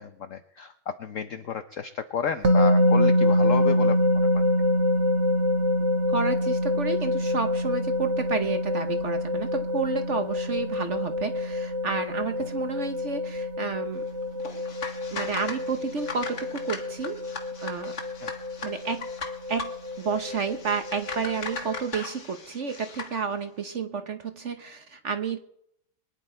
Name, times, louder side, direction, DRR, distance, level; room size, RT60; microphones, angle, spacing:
voice 1, 0.0-4.4 18.2-18.3, left 7 dB, 75° left, 10 dB, 0.7 m, -32 dB
sound 1, 2.4-21.8, left 1 dB, 35° right, 1.3 m, -26 dB
voice 2, 6.1-14.1 15.1-17.2 17.6-18.0 18.6-19.1 19.5-19.7 20.0-25.4, right 5 dB, 50° right, 8 dB, 0.9 m, -31 dB
sound 2, 14.4-23.2, left 4 dB, 40° left, 1.6 m, -39 dB
23.0 x 10.0 x 4.4 m, 0.71 s
omnidirectional pair, 2.3 m